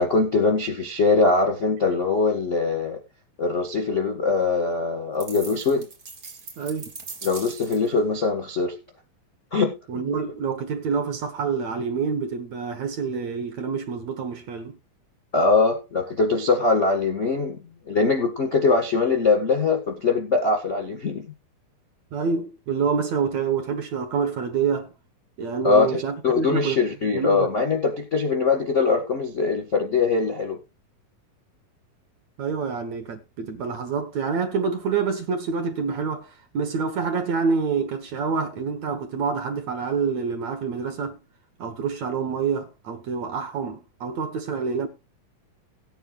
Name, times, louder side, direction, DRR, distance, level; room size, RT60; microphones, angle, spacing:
voice 1, 0.0-3.0 3.4-5.9 7.2-8.8 9.5-9.7 15.3-17.6 17.9-21.3 25.6-30.6, left 4 dB, 45° left, 1.0 m, -22 dB
sound 1, 5.2-8.0, right 4 dB, 35° right, 1.4 m, -40 dB
voice 2, 6.6-6.9 9.9-14.8 22.1-24.9 25.4-26.8 27.1-27.5 32.4-41.2 41.6-44.9, right 5 dB, 60° right, 2.0 m, -27 dB
18.0 x 9.3 x 2.4 m
omnidirectional pair, 4.2 m